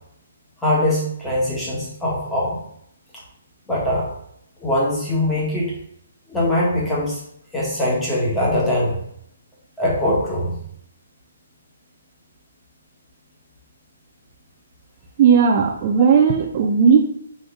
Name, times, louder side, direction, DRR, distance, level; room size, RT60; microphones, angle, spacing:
voice 1, 0.6-2.6 3.7-4.1 4.6-5.7 6.3-7.2 7.5-9.0 9.8-10.5, left 1 dB, 5° left, -6 dB, 1.3 m, -21 dB
voice 2, 15.2-17.0, right 6 dB, 35° right, 3 dB, 0.4 m, -15 dB
4.3 x 3.2 x 3.4 m, 0.71 s
hypercardioid pair, 155°, 0 cm